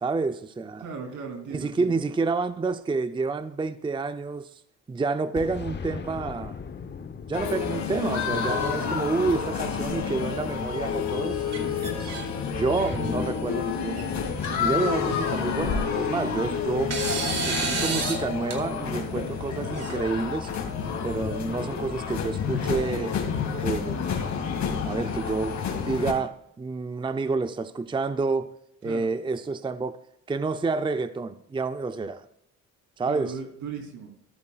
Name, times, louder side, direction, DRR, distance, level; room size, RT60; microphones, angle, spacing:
voice 1, 0.0-0.8 1.5-4.6 4.9-6.6 7.3-11.5 11.8-12.2 12.5-14.1 14.6-16.9 17.4-20.5 21.0-23.2 23.6-24.0 24.8-28.5 28.8-30.0 30.3-32.3 33.0-33.3, right 4 dB, 15° right, 0.5 m, -29 dB
voice 2, 0.8-2.0 28.8-29.1 33.1-34.1, right 5 dB, 75° right, 3.3 m, -37 dB
Boom, 5.4-10.0, left 6 dB, 35° left, 1.0 m, -40 dB
sound 1, 7.3-26.1, left 6 dB, 65° left, 2.3 m, -29 dB
sound 2, 11.5-12.3 12.7-13.1 14.0-14.1 14.4-14.5 15.8-16.4 16.9-18.2 18.5-18.6 19.7-20.6, right 4 dB, 55° right, 2.9 m, -31 dB
14.5 x 12.5 x 2.4 m
cardioid pair, 90°, 30 cm